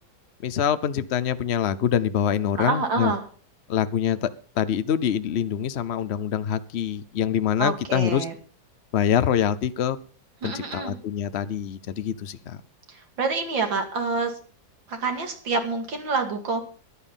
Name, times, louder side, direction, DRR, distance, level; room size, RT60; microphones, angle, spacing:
voice 1, 0.4-3.1 3.7-4.3 4.6-8.2 8.9-10.0 10.4-12.6, left 9 dB, 60° left, 14 dB, 0.7 m, -25 dB
voice 2, 2.6-3.2 7.6-8.3 10.4-11.0 12.9-14.4 14.9-16.6, right 4 dB, 75° right, 5 dB, 3.1 m, -27 dB
14.0 x 11.0 x 5.5 m, 0.42 s
omnidirectional pair, 2.1 m